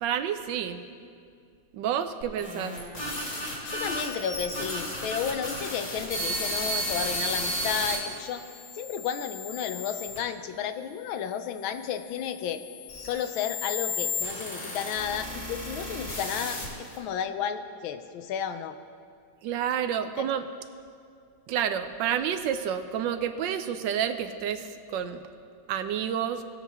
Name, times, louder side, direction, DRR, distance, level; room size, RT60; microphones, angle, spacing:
voice 1, 0.0-0.8 1.7-2.8 19.4-20.5 21.5-25.2 25.7-26.4, right 9 dB, 75° right, 9 dB, 1.2 m, -29 dB
sound 1, 2.2-8.0 8.6-10.2 11.0-17.0, left 1 dB, 55° left, 3.2 m, -34 dB
voice 2, 3.6-8.4 8.7-12.6 13.0-18.8 20.2-20.3, left 8 dB, 85° left, 9 dB, 1.5 m, -32 dB
19.5 x 7.3 x 3.5 m, 2.3 s
omnidirectional pair, 2.1 m